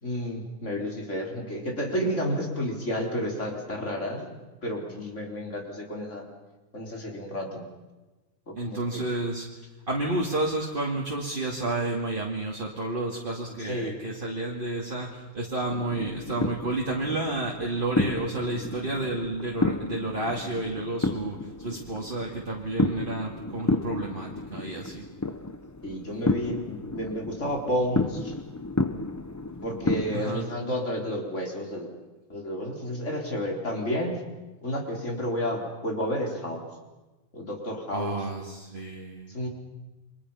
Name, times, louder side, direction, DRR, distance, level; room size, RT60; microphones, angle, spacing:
voice 1, 0.0-4.3 4.6-6.2 6.7-7.6 8.6-9.0 13.6-14.0 25.8-28.3 29.6-31.9 32.3-34.2 34.6-36.6 37.3-38.2 39.3-39.5, equal, 60° left, 1 dB, 4.6 m, -31 dB
voice 2, 8.6-9.5 9.9-25.1 30.1-30.5 37.9-39.3, right 2 dB, 40° right, -2 dB, 2.7 m, -31 dB
sound 1, 15.7-30.2, left 2 dB, 15° left, 0.7 m, -31 dB
29.0 x 24.5 x 5.7 m, 1.1 s
omnidirectional pair, 1.4 m